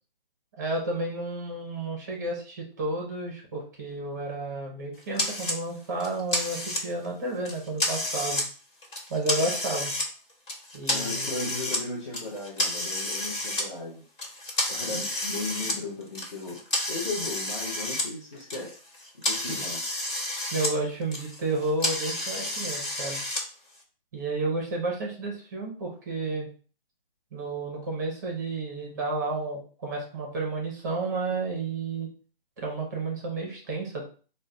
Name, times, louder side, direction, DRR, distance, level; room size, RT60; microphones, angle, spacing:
voice 1, 0.6-8.4 9.1-9.9 10.7-11.3 14.9-15.0 19.5-19.6 20.5-23.2 24.1-26.5 27.3-32.1 32.6-34.1, right 2 dB, 20° right, -1 dB, 0.6 m, -31 dB
sound 1, 5.2-5.6 6.0-7.1 7.4-8.5 8.8-10.1 10.5-11.8 12.1-13.6 14.2-18.1 18.4-20.7 21.0-23.4, left 1 dB, 60° left, 1.3 m, -30 dB
voice 2, 10.9-14.0 14.7-18.8 19.3-20.0, left 3 dB, 30° left, -6 dB, 0.7 m, -36 dB
3.2 x 2.1 x 3.8 m, 0.40 s
hypercardioid pair, 160°, 29 cm